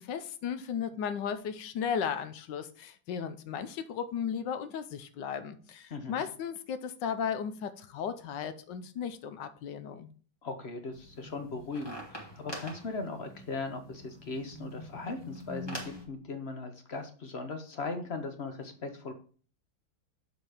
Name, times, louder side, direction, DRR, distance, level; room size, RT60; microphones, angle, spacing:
voice 1, 0.0-10.1, left 7 dB, 70° left, 1.3 m, -35 dB
voice 2, 5.9-6.2 10.4-19.1, left 3 dB, 50° left, 0.8 m, -38 dB
sound 1, 10.9-16.0, equal, 15° left, 1.6 m, -44 dB
6.7 x 4.7 x 4.9 m
omnidirectional pair, 2.2 m